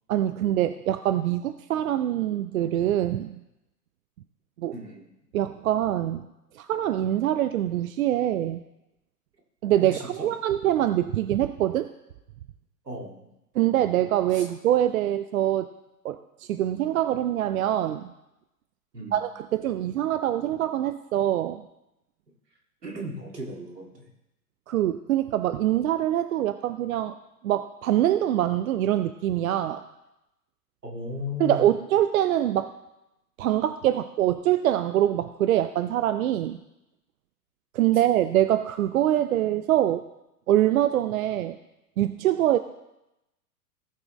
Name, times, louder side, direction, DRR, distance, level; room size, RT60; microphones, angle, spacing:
voice 1, 0.1-3.4 4.6-4.7 5.3-6.3 6.5-8.6 9.6-11.9 13.5-15.7 16.0-18.1 19.1-21.6 24.7-27.2 27.4-29.8 31.4-32.7 33.4-36.6 37.7-40.0 40.5-41.6 42.0-42.6, right 12 dB, 60° right, 11 dB, 0.6 m, -24 dB
voice 2, 4.7-5.1 9.8-10.3 12.8-13.2 14.3-14.5 18.9-19.2 22.8-24.1 30.8-31.8, left 1 dB, 85° right, -1 dB, 2.3 m, -36 dB
17.5 x 6.1 x 3.1 m, 0.92 s
figure-of-eight pair, 95°, 47 cm